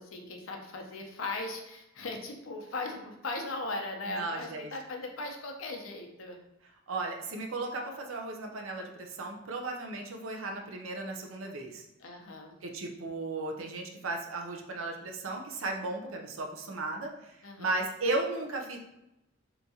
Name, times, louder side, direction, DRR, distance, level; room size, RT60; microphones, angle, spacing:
voice 1, 0.0-6.4 12.0-12.6 17.4-17.8, left 2 dB, 85° left, 2 dB, 0.6 m, -38 dB
voice 2, 4.1-4.7 6.9-11.8 12.6-17.3 17.6-18.8, right 2 dB, 85° right, 2 dB, 0.6 m, -35 dB
3.5 x 2.9 x 2.7 m, 0.87 s
head